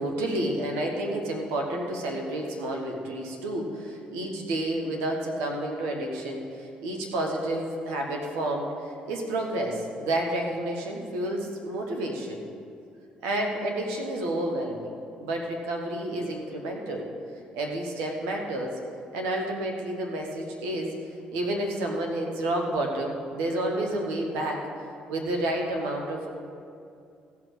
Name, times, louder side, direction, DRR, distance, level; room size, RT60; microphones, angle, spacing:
voice 1, 0.0-12.5 13.2-17.1 17.5-18.8 19.1-21.0 21.3-24.6 25.1-26.3, right 1 dB, 85° right, 1 dB, 1.5 m, -30 dB
15.0 x 6.0 x 6.4 m, 2.5 s
supercardioid pair, 65°, 3 cm